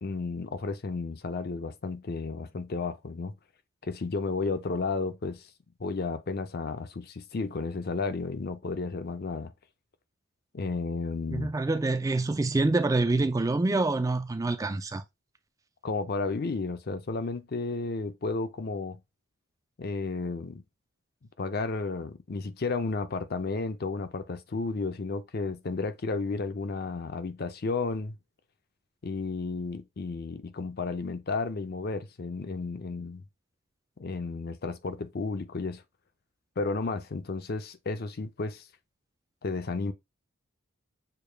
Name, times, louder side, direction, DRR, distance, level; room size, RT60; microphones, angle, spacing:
voice 1, 0.0-3.3 3.8-5.5 5.8-9.5 10.5-11.5 15.8-19.0 19.8-20.6 21.4-28.2 29.0-33.2 34.0-35.8 36.6-38.7 39.4-39.9, left 3 dB, 45° left, 0.5 m, -32 dB
voice 2, 11.3-15.0, right 2 dB, 15° right, 0.3 m, -26 dB
6.6 x 2.3 x 3.3 m
head